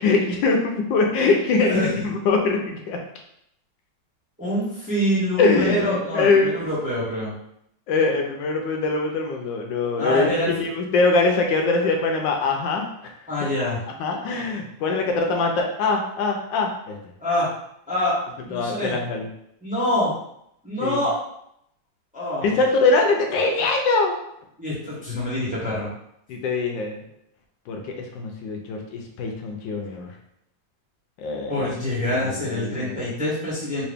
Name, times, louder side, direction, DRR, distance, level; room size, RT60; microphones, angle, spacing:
voice 1, 0.0-3.0 5.4-6.5 7.9-12.9 14.0-17.0 18.5-19.3 20.8-21.0 22.4-24.2 26.3-27.0 27.7-30.1 31.2-31.7 32.1-33.0, left 3 dB, 80° left, 2 dB, 1.3 m, -23 dB
voice 2, 1.6-2.0 4.4-7.3 10.0-10.7 13.3-13.8 17.2-17.5 17.9-18.2 18.5-19.0 19.6-20.1 20.6-21.1 22.1-22.6 24.6-25.9 31.5-33.8, left 1 dB, 5° right, -9 dB, 0.9 m, -25 dB
3.8 x 2.5 x 3.4 m, 0.75 s
omnidirectional pair, 2.0 m